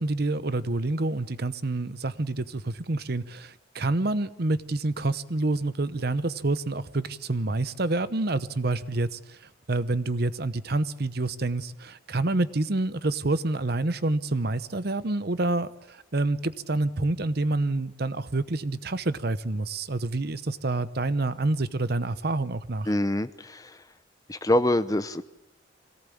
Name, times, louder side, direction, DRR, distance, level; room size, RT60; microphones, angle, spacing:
voice 1, 0.0-9.4 9.7-22.9, right 2 dB, 55° right, 0.9 m, -28 dB
voice 2, 22.9-23.8 24.3-25.2, left 1 dB, 20° left, 0.7 m, -25 dB
23.0 x 18.0 x 8.6 m
head